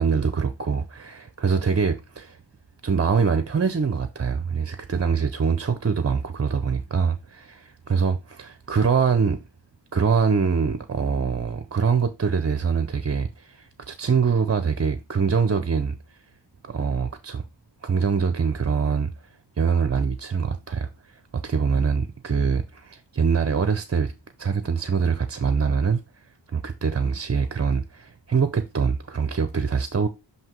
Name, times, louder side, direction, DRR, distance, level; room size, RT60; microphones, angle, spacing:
voice 1, 0.0-2.4 2.8-9.4 9.9-16.2 16.6-17.4 17.8-19.1 19.6-24.1 24.4-26.0 26.5-30.1, right 6 dB, 35° right, 0.6 m, -24 dB
7.8 x 2.9 x 4.4 m
wide cardioid pair, 85°, 45 cm